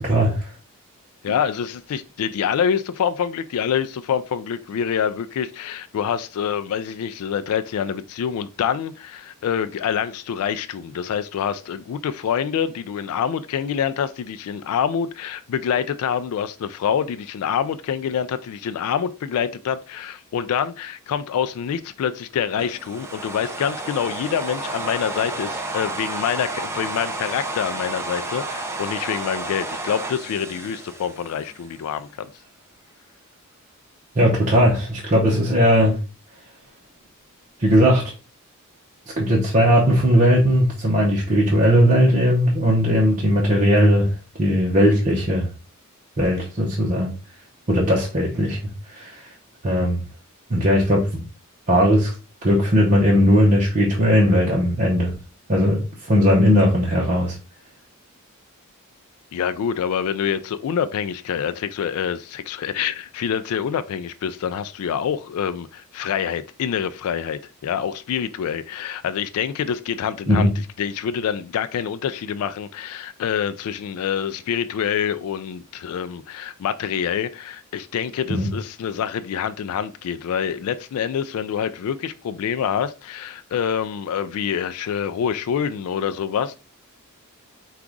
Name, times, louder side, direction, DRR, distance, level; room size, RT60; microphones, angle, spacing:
voice 1, 0.0-0.5 34.1-36.0 37.6-38.1 39.2-44.1 44.4-45.5 46.2-47.1 47.7-48.6 48.9-49.3 49.6-50.0 50.5-51.2 51.7-52.1 52.4-55.2 55.5-57.4 70.3-70.5 78.3-78.5, equal, 35° right, 0.8 m, -18 dB
voice 2, 1.2-32.3 59.3-70.5 70.8-86.6, left 8 dB, 70° left, 0.3 m, -26 dB
sound 1, 22.6-31.8, right 2 dB, 10° right, 0.5 m, -31 dB
4.7 x 2.4 x 3.7 m
head